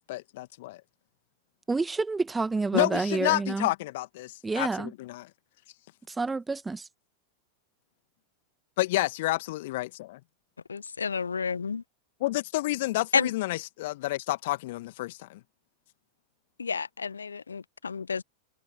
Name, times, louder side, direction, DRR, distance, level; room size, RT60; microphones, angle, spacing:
voice 1, 0.1-0.8 2.7-5.3 8.8-10.2 12.2-15.4, left 18 dB, 50° left, 1.7 m, -30 dB
voice 2, 1.7-3.7 4.4-4.9 6.1-6.9, right 3 dB, 10° right, 1.6 m, -28 dB
voice 3, 10.7-11.8 13.1-13.3 16.6-18.2, left 5 dB, 75° left, 1.5 m, -30 dB
figure-of-eight pair, 90°, 0 cm